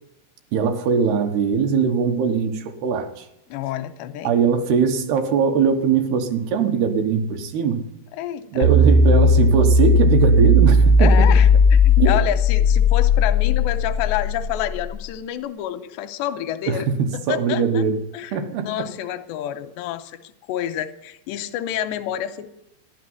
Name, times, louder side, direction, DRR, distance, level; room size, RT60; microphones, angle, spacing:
voice 1, 0.5-3.3 4.2-7.8 8.5-11.1 12.0-12.1 16.7-18.0 18.3-18.7, right 6 dB, 70° right, 6 dB, 3.1 m, -21 dB
voice 2, 3.5-4.4 8.1-8.7 11.0-17.8 18.1-22.5, left 12 dB, 85° left, 10 dB, 2.9 m, -29 dB
sound 1, 8.6-14.9, left 2 dB, 65° left, 1.1 m, -16 dB
12.5 x 11.5 x 9.5 m, 0.83 s
omnidirectional pair, 4.9 m